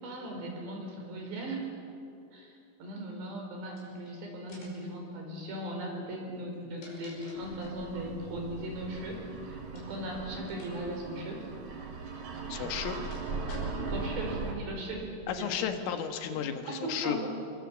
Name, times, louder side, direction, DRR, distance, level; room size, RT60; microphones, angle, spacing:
voice 1, 0.0-1.7 2.3-2.5 2.8-11.4 13.9-15.5 16.3-16.4 16.7-17.3, right 1 dB, 60° right, 1 dB, 6.4 m, -38 dB
sound 1, 3.7-4.1 4.5-4.9 6.4-7.9 9.7-10.0 10.5-10.7 11.0-11.1 12.1-14.0, left 1 dB, 55° left, 7.4 m, -51 dB
sound 2, 7.4-14.5, right 4 dB, 45° right, 3.3 m, -39 dB
voice 2, 12.5-13.0 15.3-17.3, left 8 dB, 80° left, 6 dB, 4.0 m, -33 dB
29.0 x 23.0 x 7.4 m, 2.6 s
omnidirectional pair, 5.7 m